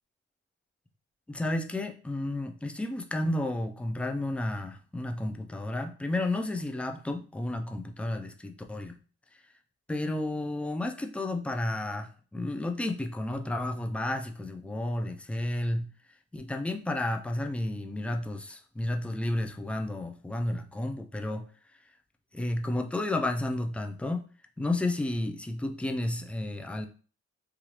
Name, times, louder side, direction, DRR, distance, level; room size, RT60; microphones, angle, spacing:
voice 1, 1.3-9.0 9.9-15.9 16.3-21.5 22.3-24.2 24.6-26.9, left 1 dB, 5° left, 4 dB, 0.3 m, -32 dB
3.1 x 2.4 x 2.8 m, 0.38 s
cardioid pair, 90°, 30 cm